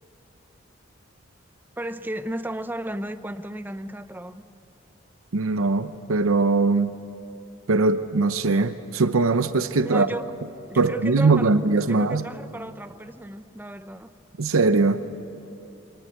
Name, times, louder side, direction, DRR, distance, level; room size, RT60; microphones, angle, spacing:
voice 1, 1.8-4.4 9.8-10.3 10.7-11.5 11.9-14.1, right 1 dB, 10° right, 11 dB, 0.6 m, -34 dB
voice 2, 5.3-6.9 7.7-10.1 10.7-12.2 14.4-15.0, right 3 dB, 80° right, 11 dB, 0.7 m, -21 dB
26.0 x 19.5 x 9.1 m, 2.8 s
head